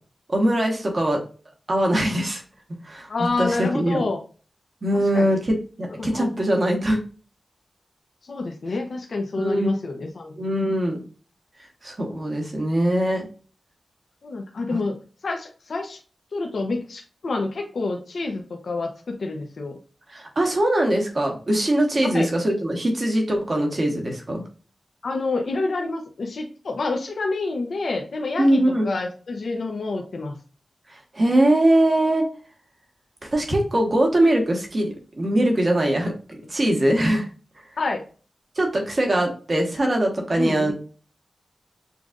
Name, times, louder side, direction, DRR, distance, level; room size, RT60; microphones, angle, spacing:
voice 1, 0.3-1.2 1.7-2.4 2.8-3.1 3.4-4.0 4.8-7.0 9.4-9.8 10.4-11.0 11.8-13.2 14.7-14.8 20.1-24.4 28.4-28.9 31.1-32.2 33.2-37.3 38.6-40.7, right 1 dB, 45° right, 1 dB, 1.2 m, -22 dB
voice 2, 3.1-4.2 5.1-5.4 6.0-6.5 8.2-10.4 14.2-14.9 15.2-16.0 16.3-19.8 22.0-22.3 25.0-30.4 37.8-38.0 40.4-40.7, left 3 dB, 75° left, 1 dB, 0.7 m, -28 dB
6.8 x 2.4 x 2.4 m, 0.38 s
wide cardioid pair, 70°, 0 cm